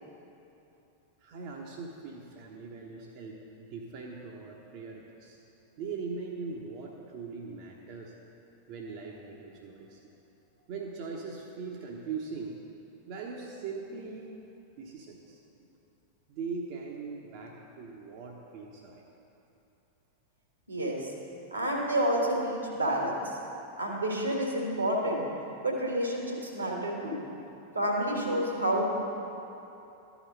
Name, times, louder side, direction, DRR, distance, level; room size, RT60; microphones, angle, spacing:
voice 1, 1.2-5.4 5.8-8.1 8.7-10.0 10.7-12.6 13.1-14.4 14.8-15.7 16.3-19.0, right 4 dB, 45° right, -1 dB, 0.9 m, -40 dB
voice 2, 20.7-21.0 21.5-23.4 23.8-25.3 25.6-27.2 27.7-28.9, right 1 dB, 80° right, -1 dB, 1.7 m, -29 dB
12.5 x 5.1 x 6.7 m, 2.9 s
figure-of-eight pair, 90°, 0 cm